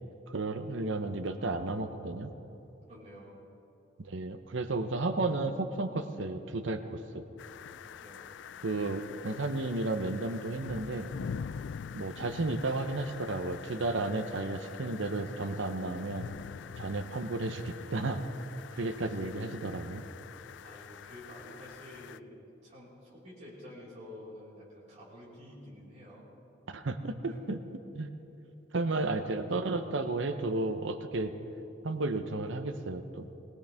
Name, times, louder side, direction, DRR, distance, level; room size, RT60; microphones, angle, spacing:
voice 1, 0.3-2.3 4.0-7.2 8.6-11.1 11.9-16.3 16.8-18.3 18.7-20.0 26.7-28.1 28.7-31.3 31.8-33.3, right 2 dB, 75° right, 8 dB, 0.8 m, -33 dB
voice 2, 2.9-3.4 8.0-8.4 20.6-22.4 22.6-26.3 27.3-27.4, left 1 dB, 35° right, -7 dB, 4.5 m, -49 dB
sound 1, 7.4-22.2, left 7 dB, 65° left, 0.3 m, -45 dB
21.0 x 17.5 x 3.5 m, 3.0 s
head